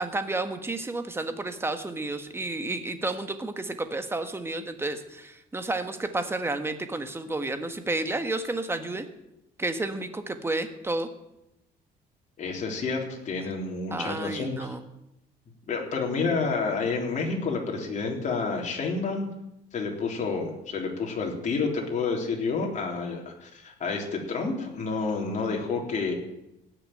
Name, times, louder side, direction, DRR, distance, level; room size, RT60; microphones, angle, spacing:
voice 1, 0.0-9.0 9.6-11.1 13.9-14.8, right 2 dB, 15° right, 8 dB, 1.5 m, -31 dB
voice 2, 12.4-14.7 15.7-19.3 19.7-26.1, left 4 dB, 45° left, 0 dB, 3.7 m, -29 dB
17.5 x 6.9 x 9.0 m, 0.89 s
cardioid pair, 110°, 17 cm